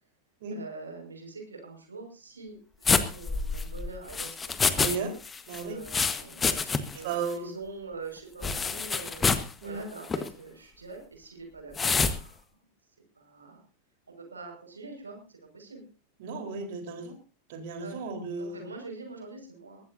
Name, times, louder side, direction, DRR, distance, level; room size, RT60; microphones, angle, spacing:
voice 1, 0.5-4.9 5.6-12.4 13.2-13.6 14.1-15.8 16.5-16.6 17.8-18.0 18.4-19.8, right 4 dB, 75° right, 3 dB, 5.8 m, -44 dB
sound 1, 2.8-5.0 5.2-7.0 7.3-7.4 8.4-9.5 10.0-10.3 11.7-12.2, left 5 dB, 15° left, 1.4 m, -27 dB
voice 2, 4.8-5.1 5.5-5.8 7.0-7.5 9.6-9.8 16.2-17.2 17.5-18.7, right 5 dB, 50° right, 6 dB, 4.1 m, -34 dB
22.0 x 15.5 x 2.7 m, 0.33 s
figure-of-eight pair, 90°, 0 cm